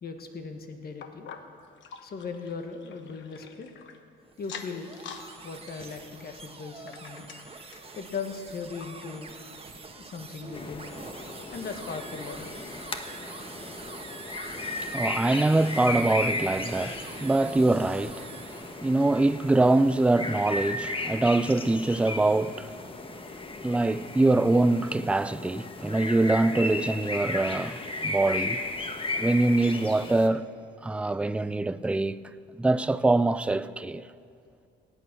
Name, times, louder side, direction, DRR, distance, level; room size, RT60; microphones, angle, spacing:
voice 1, 0.0-1.3 2.0-3.7 4.4-5.0 5.4-7.3 7.9-9.3 10.0-10.8 11.5-12.5, left 5 dB, 50° left, 1.6 m, -38 dB
sound 1, 1.0-4.0 4.4-5.3 5.6-7.9 8.4-8.5 8.8-8.9 9.5-9.6, left 7 dB, 70° left, 1.1 m, -46 dB
sound 2, 4.2-18.9, right 3 dB, 30° right, 1.3 m, -45 dB
sound 3, 10.5-30.3, left 2 dB, 25° left, 1.2 m, -35 dB
voice 2, 14.8-22.7 23.6-28.6 29.2-30.5 30.8-32.2 32.6-34.0, right 2 dB, 5° right, 0.3 m, -24 dB
17.5 x 8.5 x 6.1 m
cardioid pair, 90°, 20 cm